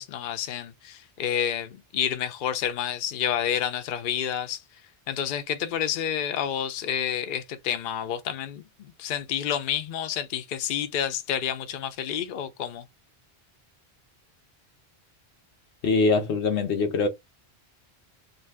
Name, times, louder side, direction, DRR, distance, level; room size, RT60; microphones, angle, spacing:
voice 1, 0.0-4.6 5.1-12.8, left 9 dB, 60° left, 0.6 m, -29 dB
voice 2, 15.8-17.1, left 3 dB, 90° left, 1.0 m, -23 dB
2.6 x 2.3 x 3.3 m
omnidirectional pair, 1.1 m